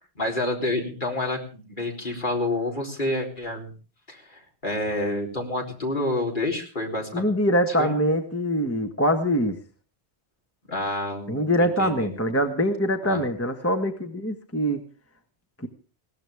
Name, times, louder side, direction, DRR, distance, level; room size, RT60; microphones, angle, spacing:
voice 1, 0.2-3.7 4.1-7.3 7.7-8.0 10.7-12.1 13.0-13.2, left 1 dB, 50° left, 1 dB, 3.9 m, -29 dB
voice 2, 7.1-9.6 11.3-14.8 15.6-15.7, equal, 15° left, 6 dB, 1.3 m, -24 dB
20.5 x 17.0 x 3.5 m, 0.37 s
omnidirectional pair, 1.1 m